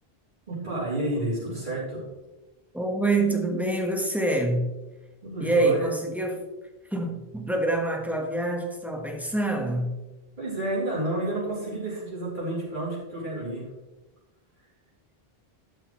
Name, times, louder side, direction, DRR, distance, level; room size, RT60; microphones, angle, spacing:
voice 1, 0.5-2.0 5.2-5.9 10.4-13.6, right 1 dB, 50° right, 4.0 m, -30 dB
voice 2, 2.7-4.7 5.4-6.4 6.9-9.9, right 2 dB, ahead, 1.3 m, -26 dB
11.5 x 8.2 x 3.2 m
omnidirectional pair, 1.0 m